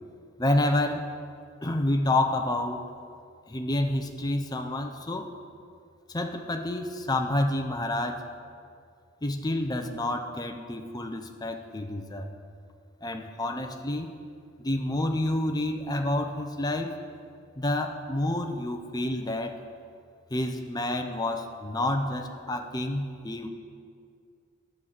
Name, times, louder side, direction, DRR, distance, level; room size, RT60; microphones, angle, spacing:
voice 1, 0.4-1.1 1.6-2.9 3.5-5.3 6.1-8.2 9.2-12.3 13.0-14.1 14.6-17.0 17.6-19.5 20.3-23.5, left 1 dB, 20° left, 5 dB, 0.7 m, -29 dB
9.7 x 7.3 x 6.5 m, 2.3 s
head